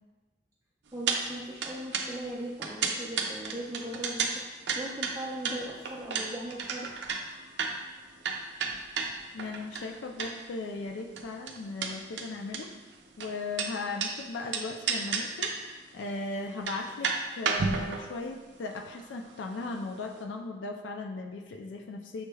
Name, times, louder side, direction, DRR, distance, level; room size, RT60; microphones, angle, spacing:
voice 1, 0.9-4.4 4.8-6.9, right 1 dB, 15° right, -8 dB, 0.4 m, -39 dB
sound 1, 1.1-1.2 1.5-10.6 10.8-14.1 14.5-15.7 16.0-16.1 16.5-19.9 20.2-20.3, right 5 dB, 70° right, 0.5 m, -32 dB
voice 2, 9.3-12.7 13.2-15.5 15.9-22.2, left 3 dB, 85° left, 4 dB, 0.4 m, -37 dB
6.3 x 3.2 x 2.2 m, 1.2 s
head